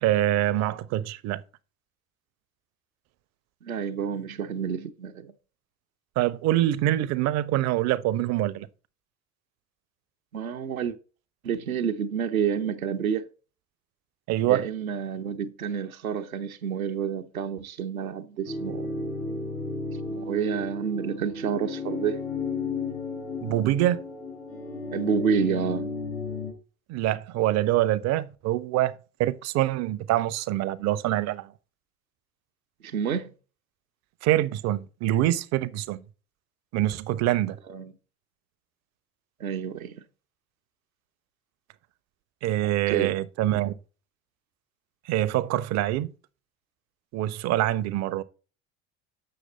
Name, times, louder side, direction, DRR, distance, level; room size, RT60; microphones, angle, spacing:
voice 1, 0.0-1.4 6.2-8.7 14.3-14.6 23.4-24.0 26.9-28.9 29.2-31.5 34.2-36.0 36.7-37.6 42.4-43.7 45.1-46.1 47.1-48.2, right 14 dB, 40° right, 0.6 m, -25 dB
voice 2, 3.6-5.3 10.3-11.0 11.4-13.2 14.5-19.0 20.1-22.2 24.9-25.9 32.8-33.3 37.7-37.9 39.4-40.0 42.6-43.1, right 7 dB, 80° right, 0.8 m, -29 dB
sound 1, 18.4-26.5, left 3 dB, 70° left, 5.0 m, -33 dB
7.6 x 6.3 x 4.3 m
figure-of-eight pair, 65°, 41 cm